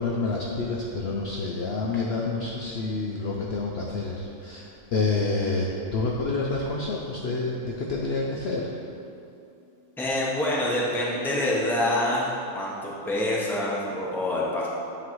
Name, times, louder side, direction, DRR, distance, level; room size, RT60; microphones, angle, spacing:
voice 1, 0.0-8.8, left 3 dB, 60° left, -2 dB, 0.7 m, -28 dB
voice 2, 10.0-12.3 12.5-14.7, left 1 dB, ahead, -5 dB, 0.7 m, -26 dB
8.5 x 3.2 x 4.6 m, 2.6 s
omnidirectional pair, 1.5 m